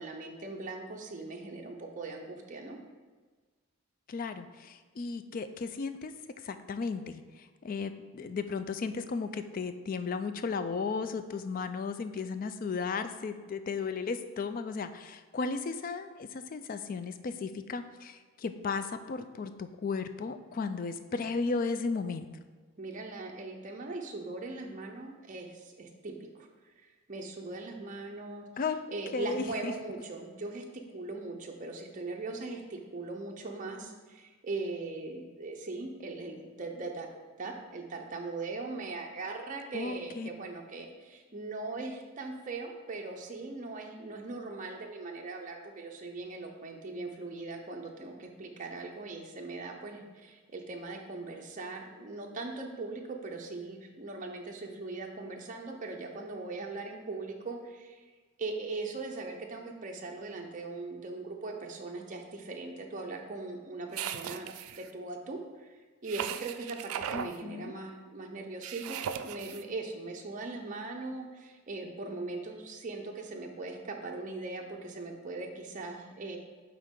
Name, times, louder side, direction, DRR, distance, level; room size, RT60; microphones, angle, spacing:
voice 1, 0.0-2.8 22.8-26.5 27.1-28.4 28.9-30.6 30.9-37.1 37.4-58.0 58.4-76.4, right 3 dB, 35° right, 2 dB, 0.6 m, -40 dB
voice 2, 4.1-6.1 6.4-22.3 28.6-28.8 29.1-29.7 39.7-40.3 67.1-67.8, left 4 dB, 40° left, 10 dB, 0.3 m, -35 dB
sound 1, 63.9-64.9 66.1-67.3 68.6-69.6, right 8 dB, 85° right, 0.3 m, -37 dB
9.1 x 3.6 x 3.7 m, 1.4 s
head